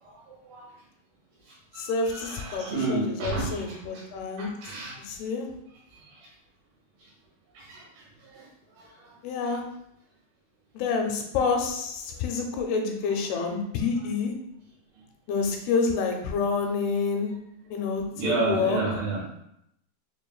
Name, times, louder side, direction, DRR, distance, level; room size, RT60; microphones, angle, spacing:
voice 1, 0.0-0.7 1.5-4.1 4.4-5.0 6.0-6.3 7.0-7.1 7.5-8.5 8.7-9.2 18.1-19.2, right 3 dB, 75° right, -5 dB, 3.1 m, -32 dB
voice 2, 1.8-4.5 5.1-5.5 9.2-9.6 10.8-14.3 15.3-17.3 17.7-18.8, left 4 dB, 85° left, 3 dB, 2.5 m, -28 dB
6.3 x 2.5 x 2.3 m, 0.77 s
omnidirectional pair, 4.5 m